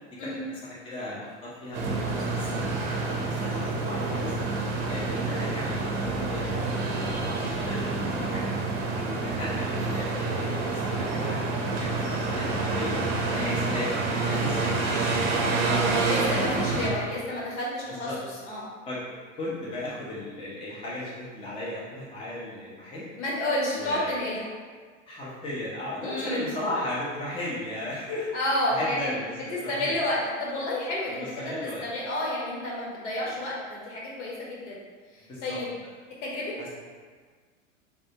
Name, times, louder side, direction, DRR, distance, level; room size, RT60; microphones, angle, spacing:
voice 1, 0.1-4.4 4.9-6.8 7.2-8.5 9.0-13.0 13.3-13.9 14.2-16.9 17.9-18.2 18.9-19.0 19.3-23.1 23.7-24.2 25.1-28.3 28.7-29.9 31.2-31.9 35.2-35.6 36.6-36.7, left 1 dB, 15° left, -7 dB, 0.6 m, -36 dB
sound 1, 1.7-16.9, right 3 dB, 50° right, 0.6 m, -28 dB
voice 2, 16.0-18.1 18.4-18.7 23.2-24.5 26.0-26.5 28.3-29.1 29.5-31.5 31.8-34.8 35.1-35.7 36.2-36.7, left 1 dB, 60° left, -5 dB, 1.2 m, -30 dB
3.3 x 2.5 x 2.8 m, 1.5 s
hypercardioid pair, 95°, 39 cm